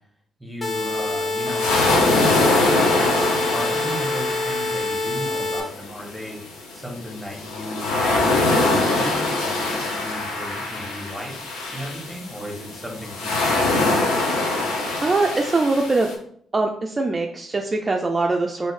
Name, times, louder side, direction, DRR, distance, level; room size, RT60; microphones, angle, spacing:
voice 1, 0.4-3.1 3.5-6.4 6.7-13.9, equal, ahead, 0 dB, 1.3 m, -35 dB
sound 1, 0.6-5.6, left 2 dB, 30° left, 0.7 m, -26 dB
sound 2, 0.7-16.1, left 2 dB, 85° left, 0.6 m, -24 dB
voice 2, 14.7-16.1 16.5-18.7, right 3 dB, 35° right, 2 dB, 0.4 m, -22 dB
3.0 x 2.7 x 3.2 m, 0.63 s
hypercardioid pair, 45°, 0 cm